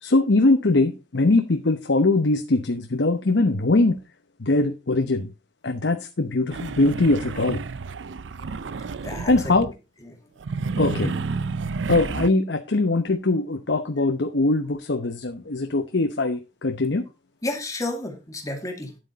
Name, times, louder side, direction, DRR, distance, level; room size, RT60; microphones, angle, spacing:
voice 1, 0.0-4.0 4.4-5.3 5.6-7.6 9.3-9.7 10.8-11.1 11.9-17.0, left 2 dB, 70° left, 6 dB, 0.9 m, -21 dB
sound 1, 6.5-9.7 10.4-12.3, right 4 dB, 85° right, 0.5 m, -30 dB
voice 2, 9.0-9.6 10.0-10.2 10.9-11.2 17.4-19.0, left 2 dB, 20° left, 3 dB, 2.3 m, -31 dB
9.8 x 7.9 x 4.0 m, 0.27 s
head